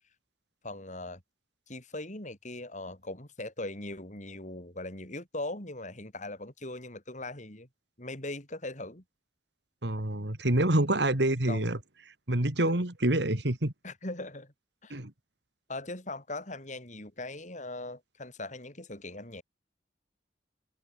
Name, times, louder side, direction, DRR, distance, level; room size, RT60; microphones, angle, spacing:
voice 1, 0.6-1.2 1.7-7.7 8.0-9.0 11.5-11.7 12.6-12.7 13.8-14.5 14.8-14.9 15.7-19.4, left 2 dB, 45° left, 6.2 m, -40 dB
voice 2, 9.8-11.8 12.3-13.7 14.9-15.1, right 1 dB, 70° right, 2.8 m, -27 dB
head